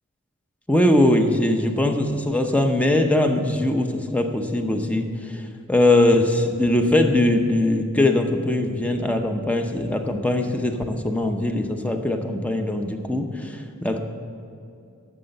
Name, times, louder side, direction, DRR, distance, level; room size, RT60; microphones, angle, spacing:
voice 1, 0.7-14.0, left 1 dB, 5° left, 5 dB, 0.7 m, -21 dB
11.0 x 6.8 x 6.5 m, 2.6 s
head